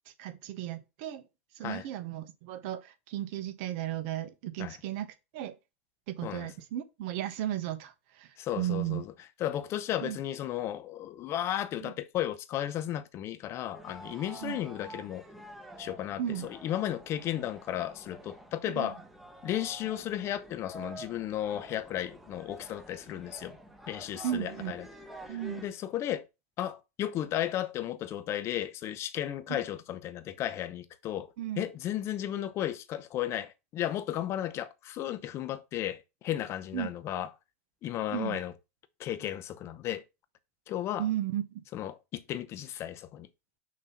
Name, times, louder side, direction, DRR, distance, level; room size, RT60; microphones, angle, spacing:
voice 1, 0.2-1.2 1.5-5.1 5.3-5.6 6.1-8.3 8.6-9.0 10.0-10.2 11.8-11.9 14.4-14.6 16.2-16.5 18.7-18.9 24.2-24.8 25.3-25.6 29.5-29.6 31.4-31.7 36.7-36.9 38.1-38.4 41.0-41.6, right 12 dB, 55° right, 1.0 m, -35 dB
voice 2, 8.4-9.1 9.4-15.2 15.8-19.0 19.4-23.6 23.9-24.9 25.3-26.3 26.6-37.3 37.8-38.5 39.0-40.0 40.7-41.1 41.7-43.3, left 12 dB, 35° left, 0.7 m, -34 dB
sound 1, 13.7-25.7, right 1 dB, 5° right, 1.0 m, -49 dB
6.3 x 2.9 x 5.6 m
supercardioid pair, 125°, 8 cm